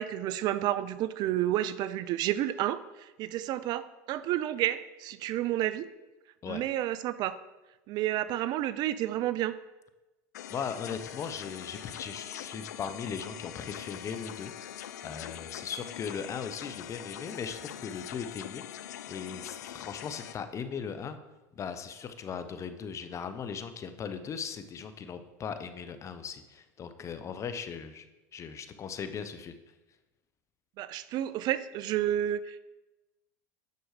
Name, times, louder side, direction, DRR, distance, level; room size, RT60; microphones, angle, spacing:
voice 1, 0.0-5.9 6.5-7.4 7.9-9.5 30.8-32.6, right 13 dB, 50° right, 15 dB, 0.5 m, -30 dB
sound 1, 10.3-20.3, left 11 dB, 85° left, 0.5 m, -43 dB
voice 2, 10.5-21.2 21.5-28.0 28.3-29.5, left 6 dB, 35° left, 10 dB, 0.8 m, -38 dB
9.4 x 6.3 x 4.9 m, 1.1 s
hypercardioid pair, 95°, 9 cm